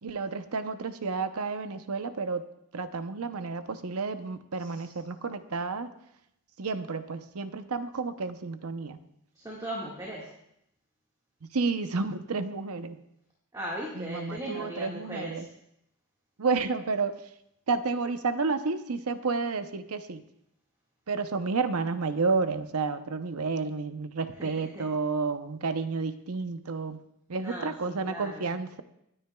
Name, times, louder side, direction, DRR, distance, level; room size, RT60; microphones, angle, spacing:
voice 1, 0.0-2.4 2.7-5.9 6.6-9.0 11.5-13.0 14.0-15.5 16.4-17.2 17.7-20.2 21.1-27.0 27.3-28.8, right 4 dB, 80° right, 10 dB, 0.7 m, -31 dB
voice 2, 9.3-10.3 13.5-15.4 24.4-24.9 27.4-28.5, right 1 dB, 15° right, -4 dB, 1.7 m, -38 dB
25.0 x 9.9 x 2.3 m, 0.78 s
head